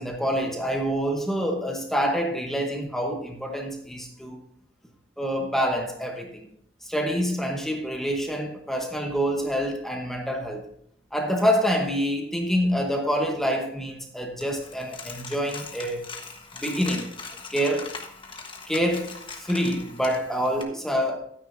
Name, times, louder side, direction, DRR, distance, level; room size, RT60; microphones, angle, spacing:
voice 1, 0.0-4.4 5.2-6.5 6.8-10.6 11.1-16.0 16.5-17.1 17.5-17.9 18.7-21.2, equal, ahead, 2 dB, 1.0 m, -26 dB
Coin (dropping), 14.4-20.6, left 4 dB, 30° left, 1.2 m, -40 dB
13.0 x 9.3 x 2.6 m, 0.72 s
head